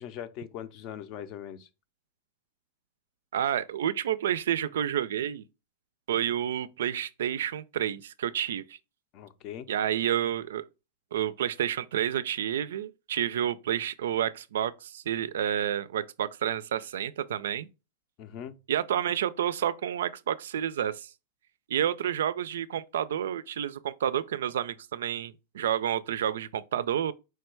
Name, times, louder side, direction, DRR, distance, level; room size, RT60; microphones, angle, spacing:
voice 1, 0.0-1.7 9.1-9.7 18.2-18.5, left 10 dB, 40° left, 0.5 m, -40 dB
voice 2, 3.3-5.4 6.1-8.8 9.7-10.7 11.1-17.7 18.7-21.1 21.7-27.1, right 10 dB, 85° right, 0.3 m, -29 dB
4.6 x 2.2 x 4.4 m
supercardioid pair, 145°, 0 cm